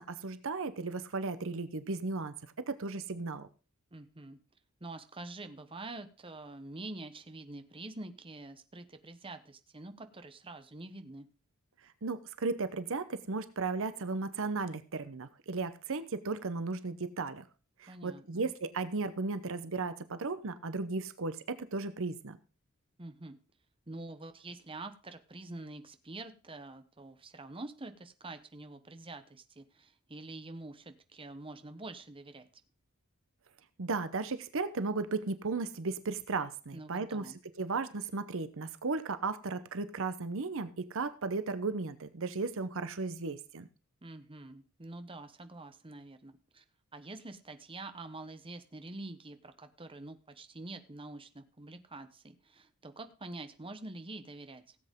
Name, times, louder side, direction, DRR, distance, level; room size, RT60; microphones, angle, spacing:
voice 1, 0.0-3.5 12.0-17.4 17.8-22.4 33.8-37.3 37.6-43.7, right 3 dB, 65° right, 12 dB, 0.8 m, -35 dB
voice 2, 3.9-4.4 4.8-11.3 17.9-18.5 23.0-23.4 23.9-32.5 36.7-37.4 44.0-46.6 46.9-54.8, right 2 dB, 25° right, 9 dB, 1.1 m, -46 dB
17.0 x 7.9 x 3.7 m, 0.35 s
head